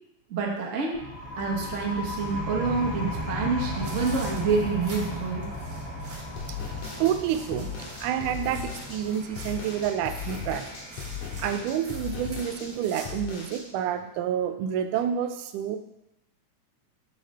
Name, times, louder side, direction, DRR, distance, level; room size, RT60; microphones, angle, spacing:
voice 1, 0.3-1.0 1.4-5.5, right 4 dB, 65° right, -2 dB, 0.7 m, -27 dB
sound 1, 0.9-12.3, left 1 dB, 10° left, 1.2 m, -36 dB
sound 2, 3.7-13.4, right 2 dB, 45° right, 1.4 m, -46 dB
sound 3, 6.4-13.6, left 6 dB, 75° left, 3.0 m, -37 dB
voice 2, 7.0-10.7 11.4-15.8, right 9 dB, 90° right, 8 dB, 2.2 m, -29 dB
8.2 x 6.7 x 3.3 m, 0.87 s
omnidirectional pair, 3.5 m